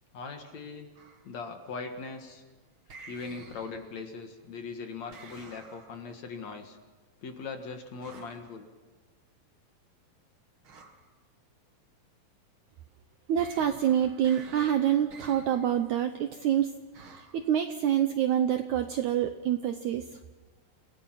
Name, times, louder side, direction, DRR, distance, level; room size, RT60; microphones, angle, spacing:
voice 1, 0.1-0.9 1.2-2.4 3.1-6.8 7.2-8.7, left 4 dB, 55° left, 5 dB, 2.6 m, -40 dB
sound 1, 0.9-1.4 2.9-4.1 5.1-6.1 8.0-8.6 10.6-11.1 13.4-15.8 16.9-17.4, right 4 dB, 45° right, 2.0 m, -51 dB
voice 2, 13.3-20.1, right 10 dB, 75° right, 8 dB, 1.8 m, -27 dB
27.5 x 17.0 x 5.9 m, 1.3 s
omnidirectional pair, 4.3 m